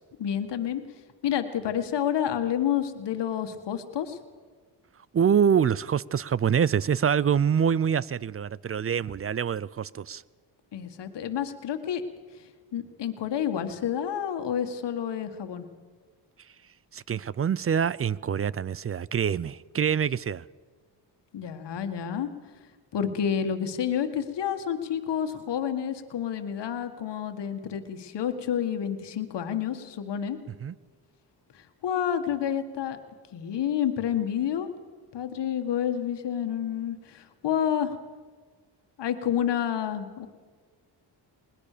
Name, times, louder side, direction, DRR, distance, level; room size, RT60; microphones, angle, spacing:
voice 1, 0.2-0.8 1.2-4.2 10.7-12.0 12.3-12.4 12.7-15.6 21.3-22.3 22.9-30.4 31.5-33.0 33.3-34.7 35.1-38.0 39.0-40.3, left 9 dB, 70° left, 7 dB, 1.8 m, -29 dB
voice 2, 5.1-10.2 16.9-20.5 30.6-30.8, right 8 dB, 30° right, 22 dB, 0.5 m, -25 dB
20.5 x 19.5 x 6.8 m, 1.5 s
cardioid pair, 85°, 43 cm